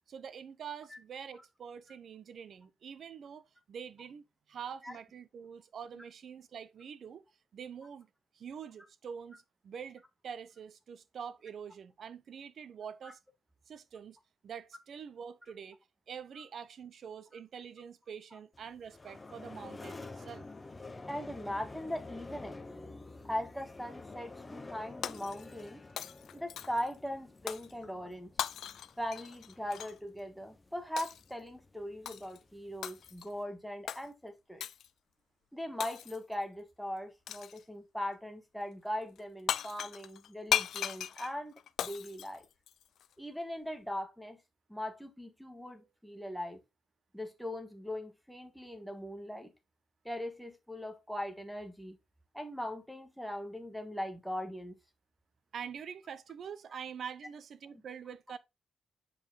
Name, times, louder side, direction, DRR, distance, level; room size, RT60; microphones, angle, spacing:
voice 1, 0.1-4.2 4.5-7.2 7.5-8.1 8.3-13.2 13.7-14.2 14.4-15.8 16.1-20.5 55.5-58.4, right 7 dB, 55° right, 0.7 m, -45 dB
sound 1, 18.5-33.4, left 3 dB, 20° left, 0.7 m, -50 dB
voice 2, 21.1-22.6 23.2-25.8 26.3-28.3 29.0-34.6 35.5-42.5 43.2-44.4 44.7-46.6 47.1-49.5 50.0-52.0 52.3-54.7, left 1 dB, ahead, 1.5 m, -40 dB
Shatter, 25.0-25.7 26.0-26.9 27.5-27.7 28.4-30.0 31.0-31.3 32.1-32.4 32.8-33.3 33.9-34.0 34.6-34.9 35.8-36.3 37.3-37.6 39.2-39.3 39.5-43.1, left 10 dB, 75° left, 0.4 m, -37 dB
7.0 x 5.2 x 3.8 m
cardioid pair, 125°, 0 cm